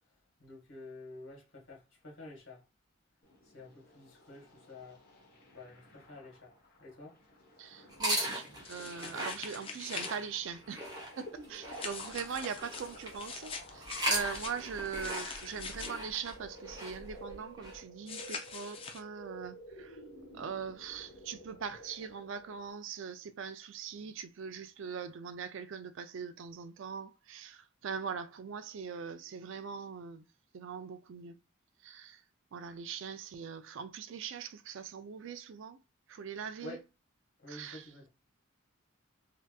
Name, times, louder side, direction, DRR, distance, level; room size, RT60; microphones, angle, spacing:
voice 1, 0.4-2.6 3.5-5.0 5.5-6.5 6.8-7.2 36.6-36.8 37.4-38.1, left 2 dB, 65° left, 1.5 m, -49 dB
sound 1, 3.2-22.7, equal, 40° left, 1.0 m, -53 dB
voice 2, 7.6-20.0 20.3-30.2 30.5-31.4 31.8-32.2 32.5-35.8 36.1-36.8 37.5-37.9, right 6 dB, 65° right, 0.4 m, -41 dB
sound 2, 7.9-13.3 13.8-17.8, equal, 20° right, 0.8 m, -39 dB
sound 3, 8.6-10.1 11.7-15.9 18.1-19.0, left 5 dB, 25° left, 0.4 m, -44 dB
3.3 x 2.8 x 2.3 m
head